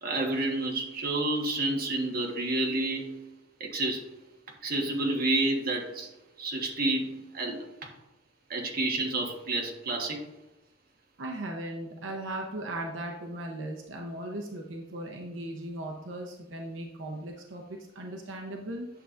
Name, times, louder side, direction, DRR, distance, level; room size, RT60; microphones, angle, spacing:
voice 1, 0.0-3.3 3.6-4.1 4.6-6.1 6.4-7.9 8.5-10.2, right 2 dB, 50° right, 1 dB, 1.4 m, -29 dB
voice 2, 11.2-18.9, right 1 dB, 80° right, 1 dB, 0.8 m, -37 dB
9.2 x 6.8 x 2.5 m, 0.98 s
head